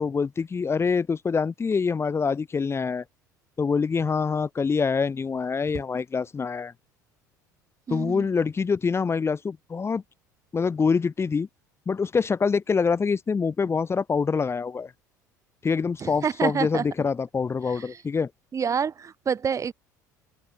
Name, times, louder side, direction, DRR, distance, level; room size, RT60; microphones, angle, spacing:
voice 1, 0.0-3.0 3.6-6.7 7.9-10.0 10.5-11.5 11.9-14.9 15.6-18.3, left 5 dB, 25° left, 2.7 m, -25 dB
voice 2, 7.9-8.3 16.0-16.9 17.7-18.0 18.5-19.7, right 6 dB, 30° right, 4.6 m, -28 dB
open air
figure-of-eight pair, 65°, 10 cm